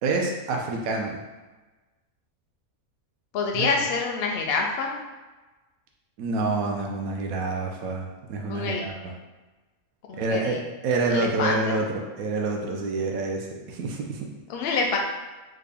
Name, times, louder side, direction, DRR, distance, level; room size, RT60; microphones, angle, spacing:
voice 1, 0.0-1.2 3.5-3.7 6.2-9.1 10.2-14.3, right 3 dB, 75° right, 1 dB, 1.0 m, -28 dB
voice 2, 3.3-5.0 8.5-8.8 10.1-10.6 11.1-11.8 14.5-15.0, left 4 dB, 65° left, 1 dB, 0.6 m, -27 dB
3.7 x 2.2 x 3.4 m, 1.2 s
omnidirectional pair, 1.5 m